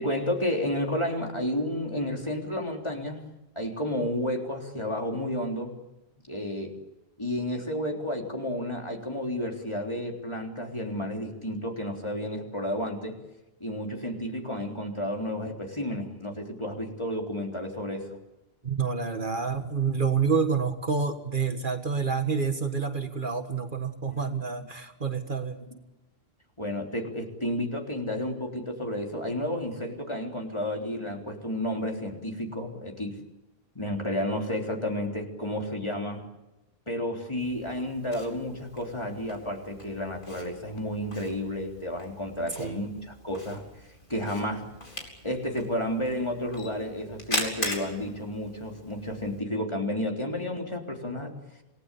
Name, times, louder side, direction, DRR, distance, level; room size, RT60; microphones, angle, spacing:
voice 1, 0.0-3.3 3.6-5.7 6.3-6.7 7.2-13.2 13.6-18.1 26.6-33.2 33.8-36.2 36.9-43.6 44.1-44.7 45.2-51.4, left 1 dB, 25° left, 1 dB, 3.7 m, -31 dB
voice 2, 18.6-25.7 42.6-42.9, right 5 dB, 55° right, 7 dB, 1.9 m, -28 dB
Camera, 37.4-49.4, left 1 dB, 55° left, 4.7 m, -40 dB
27.5 x 19.0 x 8.4 m, 1.0 s
omnidirectional pair, 1.1 m